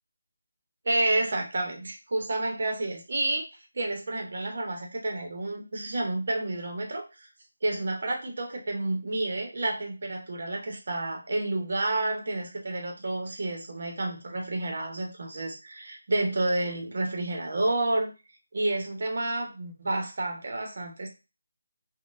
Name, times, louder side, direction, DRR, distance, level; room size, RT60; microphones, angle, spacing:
voice 1, 0.8-3.4 3.7-7.3 7.6-18.1 18.5-21.1, right 2 dB, 45° right, 2 dB, 0.7 m, -30 dB
3.9 x 2.1 x 2.4 m, 0.29 s
figure-of-eight pair, 175°, 0 cm